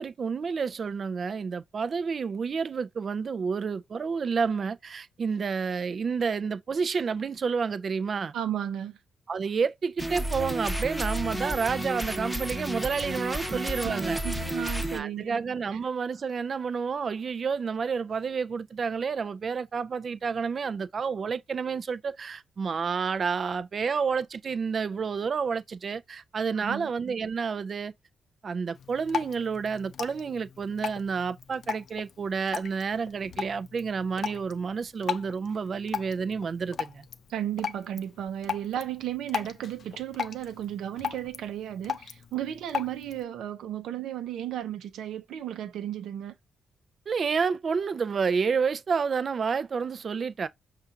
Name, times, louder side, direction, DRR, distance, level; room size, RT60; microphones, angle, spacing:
voice 1, 0.0-8.3 9.3-14.2 14.9-27.9 28.4-37.1 47.1-50.5, right 5 dB, 50° right, 0.4 m, -30 dB
voice 2, 8.3-9.0 13.5-15.4 15.7-15.8 26.6-26.9 37.3-46.3, right 11 dB, 90° right, 0.7 m, -34 dB
sound 1, 10.0-15.0, equal, ahead, 0.9 m, -31 dB
Drip, 28.7-43.2, left 7 dB, 65° left, 0.4 m, -38 dB
5.6 x 2.5 x 2.6 m
cardioid pair, 85°, 0 cm